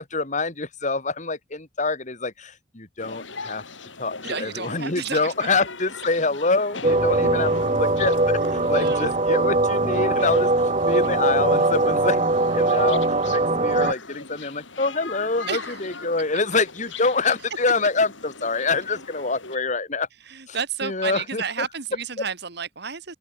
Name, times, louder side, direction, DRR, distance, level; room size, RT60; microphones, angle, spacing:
voice 1, 0.0-3.6 4.0-10.5 10.9-13.0 13.3-20.1 20.5-20.6 20.8-21.7 22.2-22.3, left 3 dB, 40° left, 2.3 m, -26 dB
sound 1, 3.0-19.6, left 4 dB, 75° left, 6.9 m, -40 dB
voice 2, 4.2-5.5 8.7-9.1 15.5-15.8 20.3-23.2, right 6 dB, 60° right, 2.1 m, -31 dB
sound 2, 6.8-13.9, right 2 dB, 35° right, 1.7 m, -21 dB
head